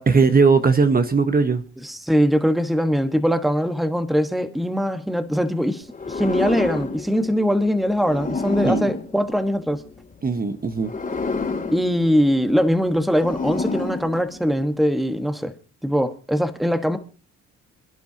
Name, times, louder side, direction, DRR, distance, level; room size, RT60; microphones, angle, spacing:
voice 1, 0.1-1.6 8.6-8.9 10.2-10.9, right 4 dB, 30° right, 1.3 m, -18 dB
voice 2, 1.8-9.8 11.7-15.5 15.8-17.0, equal, ahead, 1.3 m, -21 dB
sound 1, 5.9-10.1 10.8-14.7, left 4 dB, 25° left, 2.9 m, -30 dB
27.0 x 10.5 x 2.8 m
cardioid pair, 90°, 30 cm